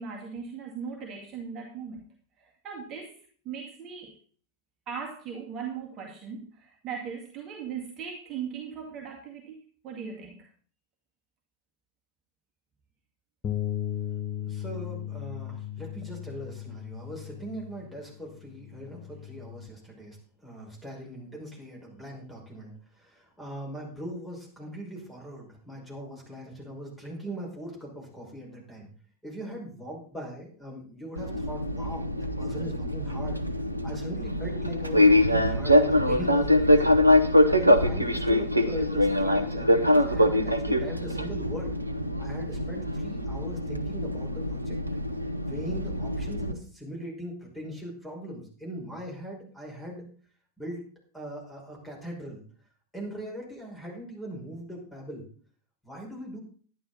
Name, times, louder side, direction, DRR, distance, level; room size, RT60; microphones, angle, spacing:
voice 1, 0.0-4.2 4.9-9.6 9.8-10.5, right 6 dB, 30° right, 0 dB, 2.1 m, -39 dB
Bass guitar, 13.4-19.7, left 10 dB, 25° left, 1.0 m, -36 dB
voice 2, 14.4-28.9 29.2-33.4 33.8-41.8 42.2-44.8 45.4-50.0 50.6-50.8 51.1-52.4 52.9-55.2 55.8-56.4, right 1 dB, 5° left, -2 dB, 5.8 m, -40 dB
Fixed-wing aircraft airplane, 31.2-46.5, left 1 dB, 85° right, 0.9 m, -24 dB
11.0 x 11.0 x 4.1 m, 0.44 s
figure-of-eight pair, 90°, 0 cm